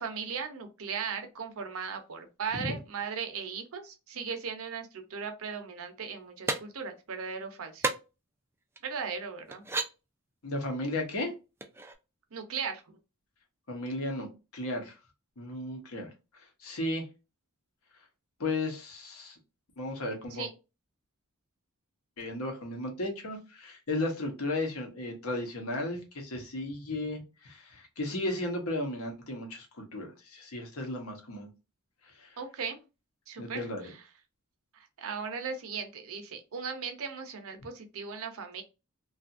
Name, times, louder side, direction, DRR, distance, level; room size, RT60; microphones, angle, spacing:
voice 1, 0.0-7.9 8.8-9.6 12.3-13.0 20.3-20.5 32.4-32.8 33.3-34.0 34.7-38.6, right 6 dB, 65° right, 0.6 m, -37 dB
sound 1, 6.5-6.6 7.8-8.0 8.8-8.9 9.5-9.9 11.6-12.0, right 3 dB, 10° right, 0.3 m, -31 dB
voice 2, 10.4-11.3 13.7-14.9 15.4-17.0 18.4-19.4 19.8-20.5 22.2-31.5 32.0-32.4 33.4-33.9, left 2 dB, 70° left, 0.9 m, -35 dB
2.7 x 2.4 x 2.4 m
head